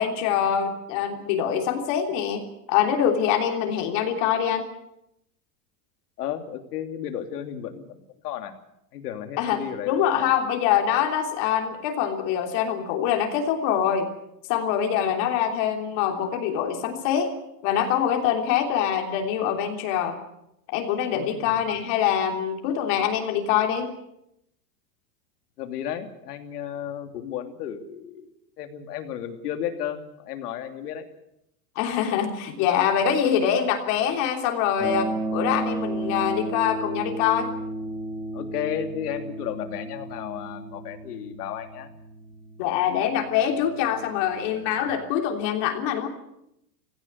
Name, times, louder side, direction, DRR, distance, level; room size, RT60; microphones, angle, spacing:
voice 1, 0.0-4.7 9.4-14.1 14.5-17.3 17.6-20.2 20.7-23.9 31.7-37.5 42.6-46.1, left 9 dB, 50° left, 3 dB, 3.4 m, -24 dB
voice 2, 6.2-8.5 8.9-10.3 21.1-21.6 25.6-28.3 28.6-31.1 38.3-41.9, left 9 dB, 90° left, 6 dB, 3.0 m, -33 dB
sound 1, 34.8-44.9, right 1 dB, 5° right, 1.4 m, -34 dB
17.0 x 16.5 x 9.5 m, 0.81 s
supercardioid pair, 155°, 45 cm